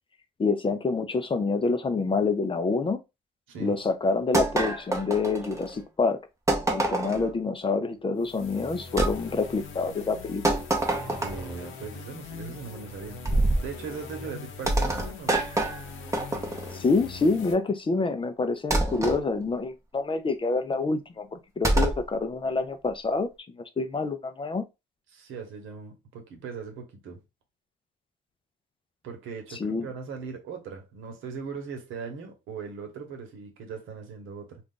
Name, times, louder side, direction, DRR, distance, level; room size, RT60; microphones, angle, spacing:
voice 1, 0.4-3.0 3.6-6.2 6.7-10.4 16.7-23.3 23.6-24.6 29.6-29.9, left 3 dB, 25° left, 0.5 m, -27 dB
sound 1, 4.3-5.8 6.5-7.3 9.0-9.2 10.4-11.6 13.3-13.7 14.7-16.8 18.7-19.2 21.6-22.0, right 2 dB, 15° right, 0.8 m, -26 dB
sound 2, 8.2-17.5, left 4 dB, 80° left, 0.8 m, -42 dB
voice 2, 11.0-13.2 13.6-15.4 25.1-27.2 29.0-34.6, right 5 dB, 85° right, 1.0 m, -39 dB
2.4 x 2.4 x 3.7 m
cardioid pair, 90°, 20 cm